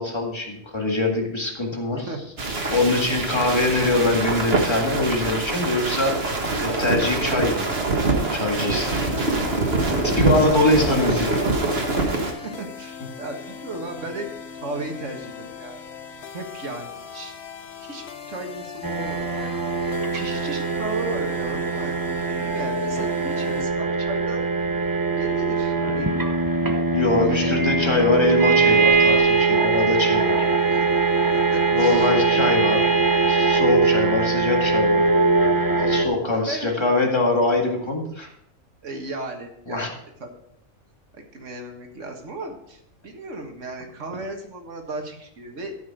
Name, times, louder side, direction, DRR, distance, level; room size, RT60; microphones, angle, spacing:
voice 1, 0.0-2.1 2.7-7.7 8.0-8.9 9.9-11.3 26.9-30.5 31.7-32.8 33.3-35.0 35.8-38.3 39.7-39.9, left 2 dB, 20° left, 1 dB, 1.9 m, -23 dB
sound 1, 2.4-12.3, right 3 dB, 55° right, 1.7 m, -24 dB
voice 2, 3.3-3.9 9.9-12.1 12.4-14.3 14.6-15.8 16.3-17.3 17.9-19.6 20.1-22.0 22.3-24.5 25.2-26.1 27.1-27.8 30.8-32.6 36.3-37.3 38.8-39.9 40.2-40.3 41.1-45.8, right 2 dB, 75° right, 3 dB, 1.9 m, -35 dB
sound 2, 8.8-23.7, left 7 dB, 65° left, 1.1 m, -39 dB
sound 3, 18.8-36.1, right 4 dB, 20° right, 0.7 m, -21 dB
13.0 x 5.9 x 5.0 m, 0.75 s
omnidirectional pair, 1.3 m